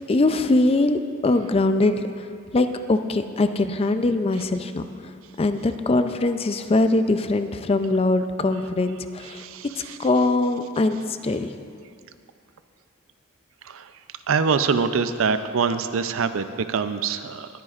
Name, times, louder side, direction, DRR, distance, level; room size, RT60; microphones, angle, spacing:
voice 1, 0.1-2.3 2.5-4.8 5.4-9.4 10.0-11.5, left 2 dB, 30° left, 9 dB, 0.4 m, -22 dB
voice 2, 14.3-17.5, right 5 dB, 80° right, 11 dB, 0.5 m, -24 dB
19.5 x 9.4 x 2.5 m, 2.3 s
head